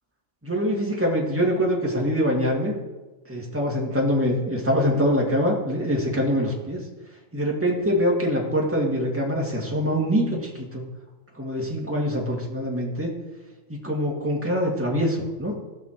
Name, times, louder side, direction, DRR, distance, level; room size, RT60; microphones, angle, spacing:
voice 1, 0.4-2.7 3.3-6.8 7.3-10.8 11.3-13.1 13.7-15.6, equal, 10° right, -3 dB, 1.9 m, -24 dB
15.5 x 5.8 x 4.5 m, 1.2 s
omnidirectional pair, 1.3 m